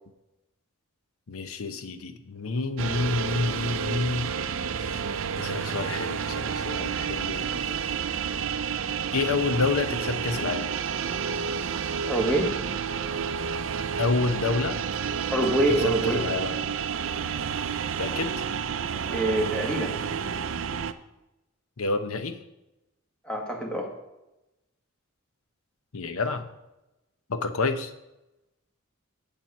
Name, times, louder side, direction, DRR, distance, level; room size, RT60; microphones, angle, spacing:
voice 1, 1.3-4.3 4.7-5.0 5.4-7.8 9.1-10.8 14.0-14.8 15.8-16.6 18.0-18.4 21.8-22.4 25.9-26.4 27.3-27.9, left 3 dB, 80° left, 9 dB, 0.8 m, -29 dB
sound 1, 2.8-20.9, right 7 dB, 65° right, 0.5 m, -30 dB
voice 2, 12.0-12.5 15.3-16.2 19.1-19.9 23.2-23.9, right 1 dB, 5° left, 0 dB, 1.4 m, -25 dB
7.5 x 7.2 x 5.4 m, 0.95 s
head